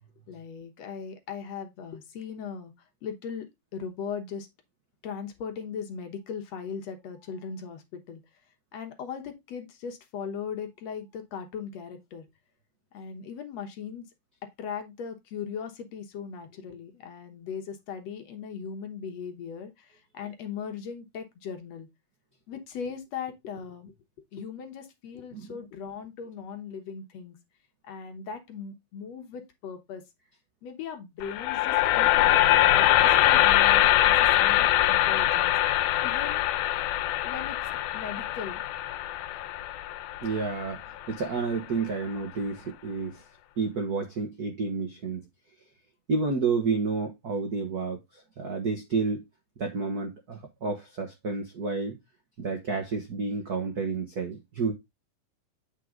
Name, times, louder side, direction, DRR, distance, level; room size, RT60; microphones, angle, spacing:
voice 1, 0.3-2.7 3.0-3.5 3.7-4.5 5.0-8.2 8.7-12.2 12.9-14.0 14.6-21.9 22.5-23.9 24.3-27.4 27.8-30.0 30.6-35.5 36.0-36.5 37.2-37.6 37.9-38.6, left 6 dB, 65° left, 2.1 m, -38 dB
sound 1, 31.2-41.3, left 14 dB, 85° left, 2.1 m, -23 dB
voice 2, 40.2-43.2 43.6-45.2 46.1-49.2 49.6-51.9 52.4-54.7, right 4 dB, 70° right, 0.9 m, -30 dB
8.4 x 4.7 x 3.7 m
omnidirectional pair, 3.6 m